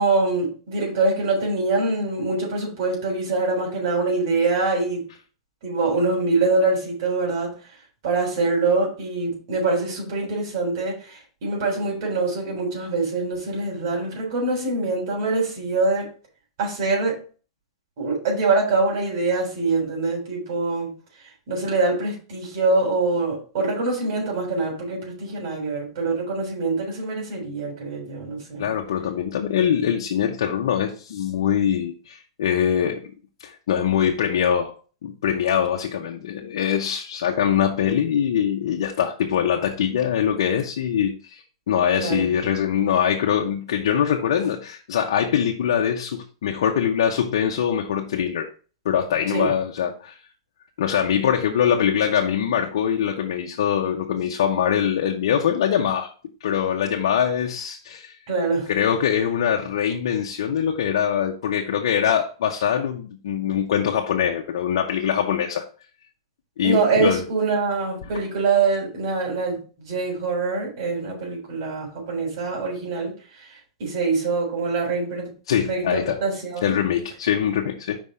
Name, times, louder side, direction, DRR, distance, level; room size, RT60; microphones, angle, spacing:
voice 1, 0.0-5.0 5.6-7.5 8.0-16.1 16.6-17.2 18.0-20.9 21.5-28.7 41.9-42.3 49.3-49.5 58.3-58.7 66.6-73.1 73.8-75.3 75.7-76.8, right 3 dB, 60° right, 3.4 m, -24 dB
voice 2, 28.6-33.0 33.4-34.7 35.0-48.5 48.8-50.2 50.8-56.1 56.4-58.2 58.7-65.7 66.6-67.2 75.5-76.2 76.6-78.0, left 8 dB, 75° left, 0.8 m, -23 dB
5.2 x 3.6 x 5.4 m
supercardioid pair, 145°, 3 cm